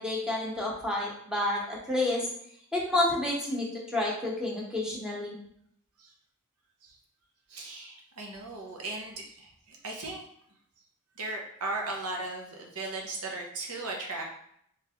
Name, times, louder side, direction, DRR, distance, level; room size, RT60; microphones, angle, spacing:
voice 1, 0.0-2.3 2.7-5.4, left 1 dB, 5° right, -4 dB, 1.0 m, -29 dB
voice 2, 7.5-10.2 11.2-14.3, right 2 dB, 75° right, 0 dB, 0.9 m, -37 dB
3.6 x 3.0 x 3.6 m, 0.69 s
head